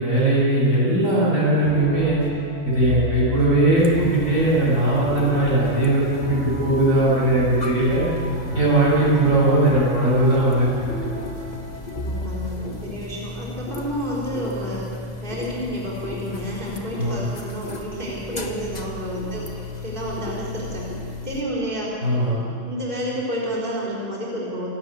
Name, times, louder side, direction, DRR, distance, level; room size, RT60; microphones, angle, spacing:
voice 1, 0.0-2.2 2.6-8.1 8.5-10.7 16.9-17.2 22.0-22.4, right 1 dB, 90° right, -6 dB, 8.6 m, -19 dB
sound 1, 1.4-12.5, equal, 55° left, 7.3 m, -34 dB
sound 2, 3.8-21.4, left 3 dB, 30° left, 1.7 m, -33 dB
voice 2, 12.0-14.9 15.2-20.9 21.2-22.0 22.7-24.7, equal, 40° right, -6 dB, 4.2 m, -30 dB
27.5 x 13.5 x 9.3 m, 2.6 s
omnidirectional pair, 1.4 m